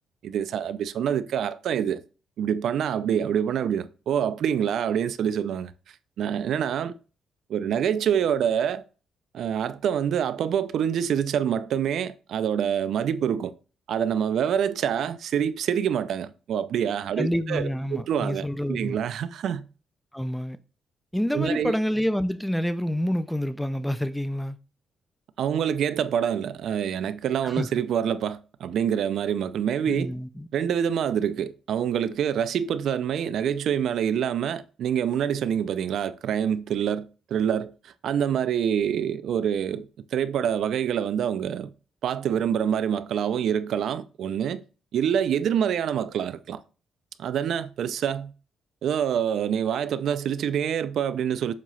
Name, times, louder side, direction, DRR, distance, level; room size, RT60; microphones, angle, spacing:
voice 1, 0.2-2.0 2.4-5.7 6.2-6.9 7.5-8.8 9.3-13.5 13.9-19.7 21.3-21.8 25.4-30.1 30.5-39.9 40.1-41.7 42.0-44.6 44.9-46.6 47.2-48.3 48.8-51.5, right 8 dB, 65° right, 0.5 m, -26 dB
voice 2, 17.2-19.0 20.1-20.6 21.1-24.6 27.4-27.7 29.9-30.5, equal, 5° left, 0.4 m, -27 dB
7.5 x 3.0 x 5.5 m
cardioid pair, 155°, 0 cm